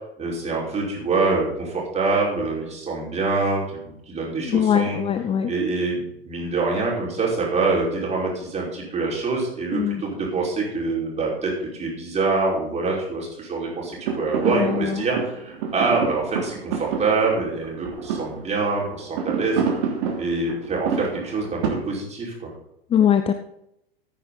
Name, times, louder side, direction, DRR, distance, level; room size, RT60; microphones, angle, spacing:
voice 1, 0.2-5.0 5.5-19.6 20.2-22.5, right 3 dB, 20° right, -3 dB, 5.2 m, -25 dB
voice 2, 4.4-5.5 9.7-10.0 14.5-15.0 22.9-23.3, left 9 dB, 20° left, 10 dB, 0.6 m, -21 dB
sound 1, 13.7-21.7, right 6 dB, 55° right, 3.0 m, -29 dB
14.5 x 9.4 x 4.1 m, 0.80 s
figure-of-eight pair, 90°, 30 cm